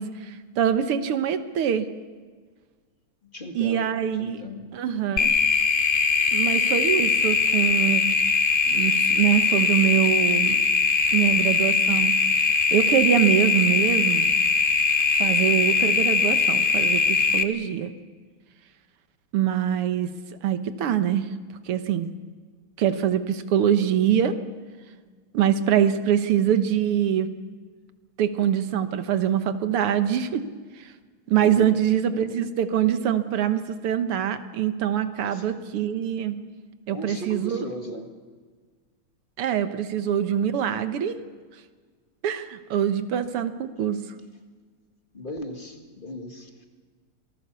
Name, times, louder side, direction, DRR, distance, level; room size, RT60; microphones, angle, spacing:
voice 1, 0.0-1.9 3.6-4.4 4.7-5.3 6.3-8.1 8.7-10.6 11.1-14.3 15.1-17.9 19.3-20.1 20.4-21.3 21.7-22.1 22.8-24.4 25.3-27.3 28.2-30.4 30.8-30.9 31.3-36.4 36.9-37.7 39.4-41.2 42.2-44.0, right 9 dB, 90° right, 10 dB, 2.1 m, -24 dB
voice 2, 3.2-3.9 4.2-4.7 31.3-31.7 35.2-35.5 36.9-38.1 45.1-46.6, equal, 25° left, 4 dB, 2.1 m, -37 dB
sound 1, 5.2-17.4, left 4 dB, 40° left, 0.8 m, -21 dB
27.0 x 19.0 x 6.9 m, 1.5 s
omnidirectional pair, 2.4 m